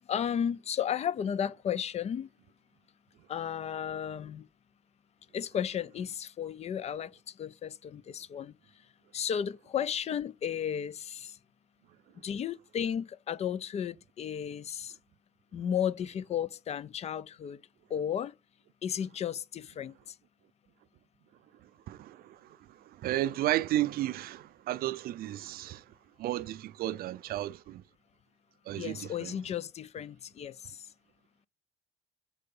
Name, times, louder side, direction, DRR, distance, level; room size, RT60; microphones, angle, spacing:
voice 1, 0.1-2.3 3.3-4.5 5.3-8.5 9.1-11.4 12.2-15.0 15.5-17.6 17.9-18.3 18.8-20.2 28.7-30.9, left 8 dB, 40° left, 0.4 m, -34 dB
voice 2, 21.6-27.8 28.7-29.4, right 14 dB, 65° right, 0.4 m, -34 dB
6.7 x 4.6 x 5.3 m
cardioid pair, 110°, 17 cm